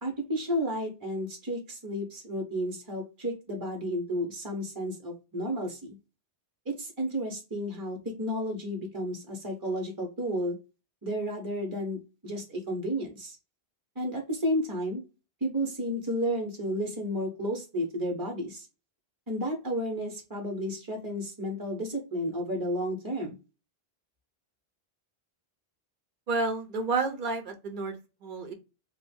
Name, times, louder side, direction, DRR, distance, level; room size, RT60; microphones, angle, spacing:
voice 1, 0.0-6.0 6.7-10.6 11.0-12.0 12.2-13.4 14.0-15.0 15.4-18.7 19.3-23.4, equal, 25° right, 0 dB, 0.7 m, -32 dB
voice 2, 26.3-28.5, right 3 dB, 60° right, 6 dB, 0.7 m, -30 dB
2.5 x 2.1 x 3.3 m, 0.30 s
omnidirectional pair, 1.0 m